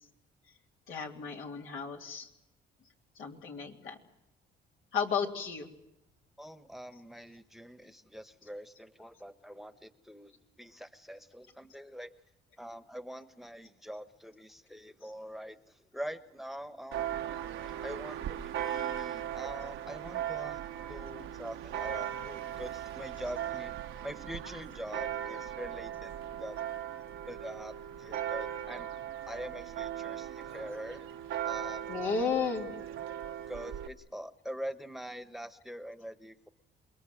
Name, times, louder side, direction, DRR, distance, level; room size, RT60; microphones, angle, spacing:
voice 1, 0.9-2.3 3.1-4.0 4.9-5.7 31.9-32.8, left 6 dB, 80° left, 1 dB, 3.3 m, -33 dB
voice 2, 6.4-12.1 12.6-17.2 17.8-23.8 24.0-26.6 27.3-31.0 31.4-32.0 33.5-36.5, equal, ahead, 11 dB, 1.2 m, -44 dB
Church bell, 16.9-33.9, right 10 dB, 85° right, 1.1 m, -38 dB
27.5 x 21.5 x 7.9 m, 0.87 s
cardioid pair, 90°, 20 cm